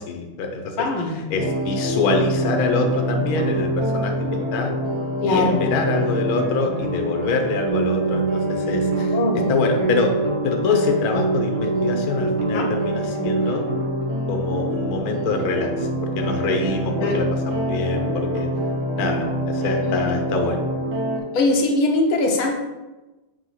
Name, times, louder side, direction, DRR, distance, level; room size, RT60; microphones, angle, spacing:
voice 1, 0.0-0.9 1.1-4.1 4.5-4.7 5.2-9.2 9.5-10.1 10.4-13.7 14.3-15.9 16.2-18.5 19.0-20.6, left 4 dB, 60° left, 3 dB, 1.1 m, -25 dB
voice 2, 0.8-1.2 5.2-5.6 9.1-9.4 12.5-12.7 17.0-17.2 19.8-20.1 21.3-22.6, left 2 dB, 85° left, 0 dB, 1.8 m, -21 dB
sound 1, 1.3-21.2, right 1 dB, 85° right, 2.3 m, -25 dB
7.3 x 3.0 x 5.6 m, 1.1 s
omnidirectional pair, 2.2 m